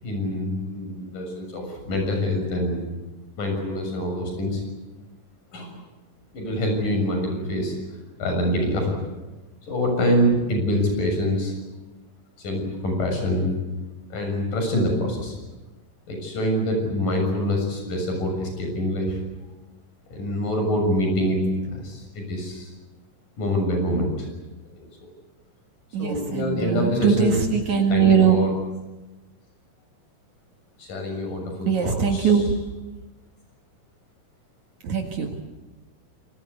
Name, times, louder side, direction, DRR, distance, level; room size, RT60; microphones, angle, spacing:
voice 1, 0.0-2.8 3.4-4.6 5.5-5.8 6.3-7.7 8.2-8.9 9.7-11.5 12.4-13.5 14.1-15.4 16.1-19.2 20.1-22.7 23.4-24.3 24.8-24.9 26.0-27.4 27.9-28.5 30.8-32.4, equal, 85° left, 3 dB, 8.6 m, -25 dB
voice 2, 25.9-28.4 31.7-32.5 34.8-35.3, right 7 dB, 65° right, 2 dB, 3.2 m, -21 dB
28.0 x 20.0 x 8.5 m, 1.1 s
omnidirectional pair, 3.7 m